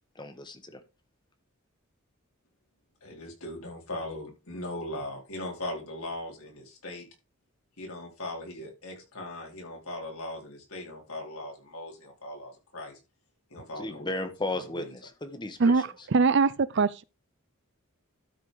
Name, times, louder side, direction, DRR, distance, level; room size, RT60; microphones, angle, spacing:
voice 1, 0.1-0.8 13.8-15.7, left 2 dB, 20° left, 1.3 m, -35 dB
voice 2, 3.0-7.1 7.8-13.0 13.5-14.1 14.5-14.9, left 1 dB, 80° left, 4.3 m, -39 dB
voice 3, 15.6-17.0, right 4 dB, 55° right, 0.5 m, -23 dB
12.5 x 4.3 x 5.0 m
head